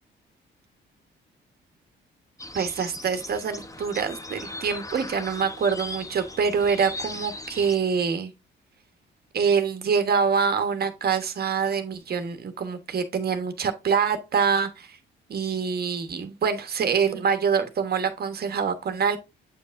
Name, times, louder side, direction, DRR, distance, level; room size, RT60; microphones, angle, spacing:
sound 1, 2.4-7.8, left 2 dB, 15° left, 1.0 m, -38 dB
voice 1, 2.5-8.3 9.3-15.0 15.3-19.2, right 6 dB, 50° right, 1.3 m, -25 dB
8.3 x 5.5 x 2.6 m
cardioid pair, 90°, 20 cm